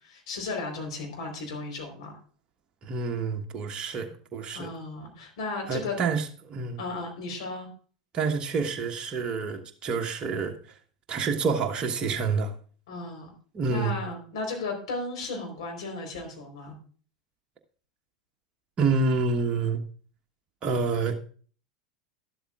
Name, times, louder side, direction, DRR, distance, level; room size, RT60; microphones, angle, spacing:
voice 1, 0.0-2.1 4.5-6.0 6.8-7.7 12.9-13.3 13.7-16.8, left 3 dB, 60° left, 4.1 m, -35 dB
voice 2, 2.8-4.7 5.7-6.8 8.1-10.6 11.1-12.5 13.5-14.0 18.8-19.8 20.6-21.1, right 4 dB, 25° right, 1.4 m, -28 dB
12.5 x 12.0 x 2.5 m
figure-of-eight pair, 85°, 4 cm